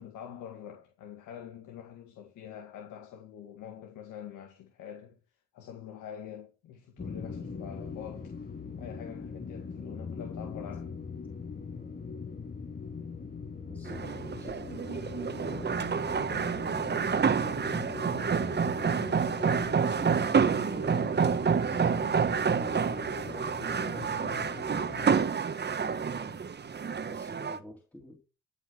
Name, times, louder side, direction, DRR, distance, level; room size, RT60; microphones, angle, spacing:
voice 1, 0.0-5.2 5.5-8.3 8.8-11.0, left 9 dB, 85° left, 1.9 m, -45 dB
sound 1, 7.0-25.1, left 5 dB, 30° left, 6.6 m, -41 dB
voice 2, 13.7-17.8 22.4-26.4 27.0-28.2, equal, 5° left, 2.5 m, -48 dB
sound 2, 13.9-27.6, right 6 dB, 35° right, 1.1 m, -28 dB
13.0 x 5.7 x 6.2 m
cardioid pair, 90°, 30 cm